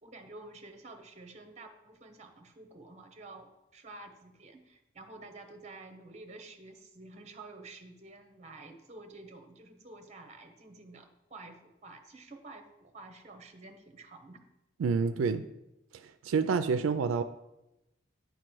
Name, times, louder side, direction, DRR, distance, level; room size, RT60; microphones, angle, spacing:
voice 1, 0.0-14.4, right 2 dB, 35° right, 6 dB, 0.8 m, -50 dB
voice 2, 14.8-15.4 15.9-17.2, right 5 dB, 80° right, 11 dB, 0.4 m, -28 dB
9.4 x 3.1 x 6.0 m, 0.92 s
head